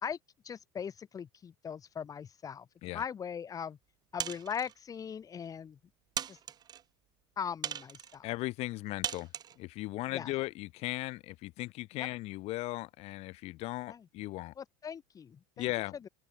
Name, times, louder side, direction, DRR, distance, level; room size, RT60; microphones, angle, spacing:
voice 1, 0.4-2.7 2.9-3.8 4.1-5.8 6.3-6.4 7.4-8.3 10.1-10.3 12.0-12.1 13.9-14.1 14.6-15.7 16.0-16.1, left 7 dB, 25° left, 2.1 m, -40 dB
sound 1, 4.2-4.7 5.5-5.6 6.2-6.8 7.6-8.2 9.0-9.6, right 9 dB, 30° right, 0.8 m, -38 dB
voice 2, 8.2-9.3 9.6-14.5 15.6-15.9, left 20 dB, 55° left, 1.0 m, -37 dB
open air
supercardioid pair, 120°, 13 cm